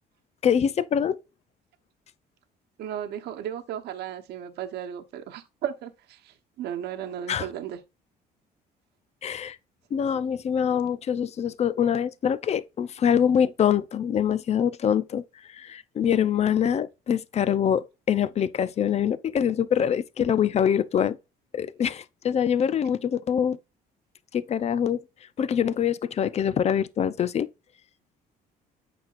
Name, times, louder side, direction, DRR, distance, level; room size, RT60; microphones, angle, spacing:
voice 1, 0.4-1.2 7.3-7.4 9.2-9.6 9.9-15.2 15.5-21.2 21.5-23.6 24.3-25.0 25.4-27.5, left 8 dB, 40° left, 0.6 m, -24 dB
voice 2, 2.8-7.8, right 10 dB, 75° right, 1.1 m, -35 dB
8.5 x 5.9 x 2.5 m
cardioid pair, 110°, 17 cm